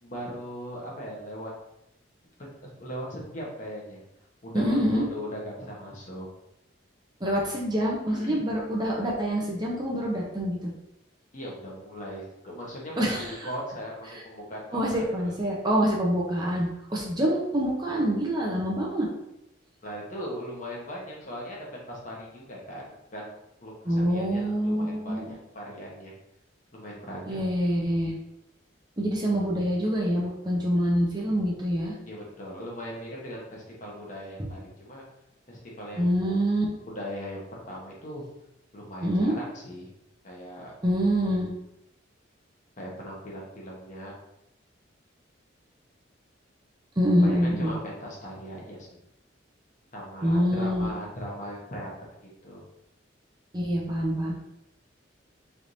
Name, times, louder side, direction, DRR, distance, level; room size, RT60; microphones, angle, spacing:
voice 1, 0.0-1.5 2.4-4.0 4.4-6.3 8.1-8.4 11.3-15.4 19.8-23.3 23.6-26.1 26.7-27.4 32.1-35.0 35.5-36.4 36.8-38.2 38.7-39.9 40.2-40.7 42.8-44.1 47.2-49.0 49.9-51.9 52.4-52.6, equal, 40° left, -3 dB, 1.1 m, -39 dB
voice 2, 4.5-5.0 7.2-10.7 13.0-13.5 14.1-14.2 14.7-19.1 23.9-25.3 27.3-28.1 29.0-31.9 34.4-34.5 36.0-36.6 39.0-39.3 40.8-41.5 47.0-47.7 50.2-50.9 53.5-54.3, equal, 20° right, -3 dB, 0.7 m, -26 dB
4.5 x 3.4 x 2.6 m, 0.83 s
head